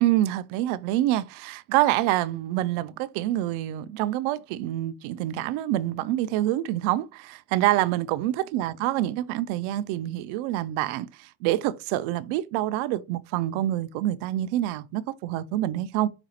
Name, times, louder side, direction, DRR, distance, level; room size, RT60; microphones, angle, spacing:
voice 1, 0.0-16.1, right 14 dB, 85° right, 0.6 m, -26 dB
5.1 x 2.3 x 4.2 m
cardioid pair, 100°, 48 cm